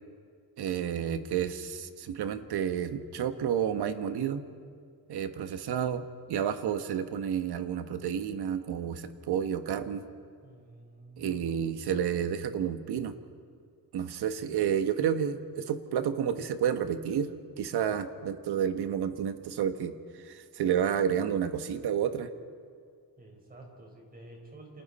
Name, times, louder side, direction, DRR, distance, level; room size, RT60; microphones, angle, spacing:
voice 1, 0.6-4.4 5.1-6.0 6.3-10.1 11.2-13.2 13.9-17.3 17.6-19.9 20.2-22.3, right 8 dB, 80° right, 9 dB, 1.4 m, -30 dB
voice 2, 10.4-11.5 23.2-24.8, right 2 dB, 25° right, 1 dB, 4.8 m, -50 dB
28.5 x 28.0 x 4.3 m, 2.2 s
wide cardioid pair, 170°, 38 cm